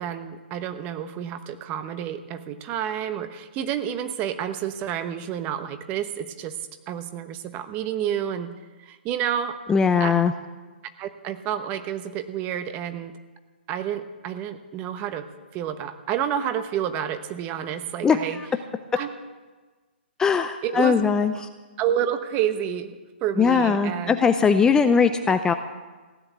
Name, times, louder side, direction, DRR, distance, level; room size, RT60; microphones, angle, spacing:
voice 1, 0.0-6.6 6.9-8.5 8.8-9.6 10.0-10.1 11.0-13.1 13.7-18.4 18.9-19.1 20.6-21.2 21.8-24.2, right 9 dB, 25° right, 10 dB, 1.0 m, -29 dB
voice 2, 9.7-10.3 18.0-18.5 20.2-21.3 23.4-25.5, left 6 dB, 10° left, 8 dB, 0.5 m, -20 dB
16.0 x 10.0 x 8.1 m, 1.3 s
hypercardioid pair, 135°, 6 cm